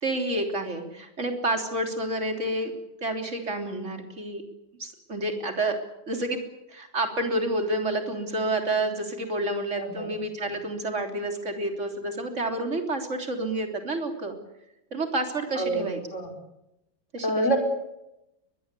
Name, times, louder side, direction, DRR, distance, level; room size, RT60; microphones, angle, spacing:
voice 1, 0.0-2.7 3.0-4.4 4.8-5.8 6.1-6.4 6.7-14.4 14.9-16.0 17.1-17.6, right 2 dB, 35° right, 4 dB, 3.7 m, -29 dB
voice 2, 9.8-10.1 15.6-16.3 17.2-17.6, right 1 dB, 35° left, 3 dB, 5.5 m, -27 dB
23.0 x 20.5 x 8.4 m, 0.89 s
omnidirectional pair, 2.0 m